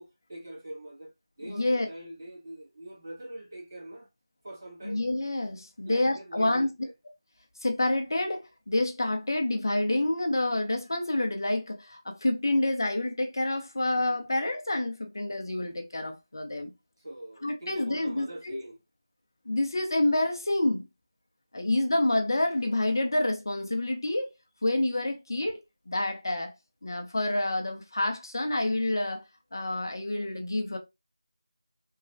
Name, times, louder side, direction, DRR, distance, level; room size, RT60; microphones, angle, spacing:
voice 1, 0.0-4.1 4.4-5.0 5.8-6.9 17.0-18.8, right 1 dB, 30° right, 1.3 m, -43 dB
voice 2, 1.5-1.9 4.8-6.7 7.6-16.7 17.4-18.6 19.5-20.9 21.5-24.3 24.6-26.5 26.8-29.2 29.5-30.8, left 1 dB, 50° left, 0.6 m, -28 dB
3.0 x 2.2 x 2.5 m
figure-of-eight pair, 175°, 3 cm